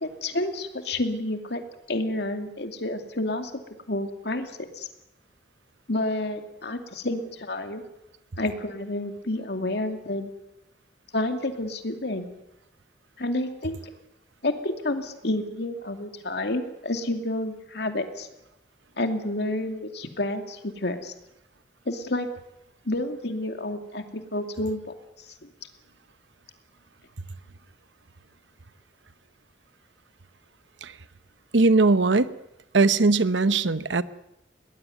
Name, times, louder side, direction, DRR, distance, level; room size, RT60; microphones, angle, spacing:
voice 1, 0.0-1.6 1.9-3.5 3.9-4.9 5.9-7.8 8.4-10.3 11.1-12.3 13.2-13.8 14.4-18.3 19.0-21.1 21.9-22.3 22.9-24.0 24.3-24.8 25.4-25.5, left 1 dB, 65° left, 6 dB, 2.5 m, -29 dB
voice 2, 31.5-32.3 32.7-34.0, right 3 dB, 80° right, 14 dB, 0.9 m, -20 dB
21.0 x 19.5 x 9.3 m, 0.90 s
head